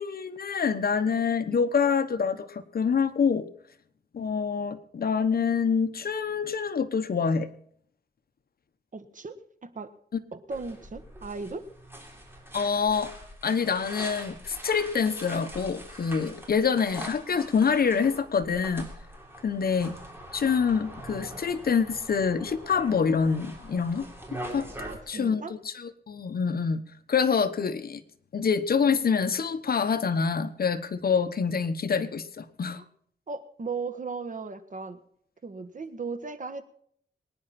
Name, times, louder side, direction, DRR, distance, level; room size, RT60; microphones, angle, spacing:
voice 1, 0.0-3.5 4.1-7.5 12.5-13.1 13.4-18.9 19.4-19.9 20.3-24.1 24.5-24.7 25.1-26.8 27.1-28.0 28.3-32.8, left 6 dB, 55° left, 10 dB, 1.1 m, -26 dB
voice 2, 8.9-9.9 10.3-11.7 24.8-25.5 32.7-32.9 33.3-35.0 35.4-36.6, right 4 dB, 45° right, 10 dB, 1.4 m, -37 dB
sound 1, 10.5-25.0, right 1 dB, 10° right, 3.5 m, -43 dB
23.5 x 9.9 x 4.3 m, 0.64 s
wide cardioid pair, 115°, 18 cm